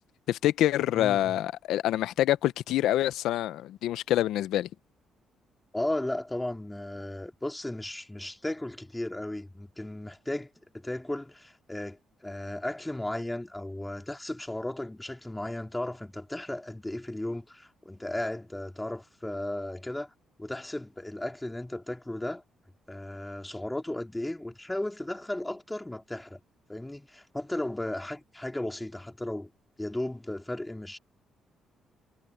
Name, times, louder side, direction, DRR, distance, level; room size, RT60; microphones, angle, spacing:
voice 1, 0.3-4.7, left 13 dB, 85° left, 0.7 m, -26 dB
voice 2, 0.9-1.3 5.7-20.1 20.4-22.4 22.9-26.4 26.7-29.5 29.8-31.0, left 1 dB, 10° left, 2.7 m, -35 dB
cardioid pair, 90°, 0 cm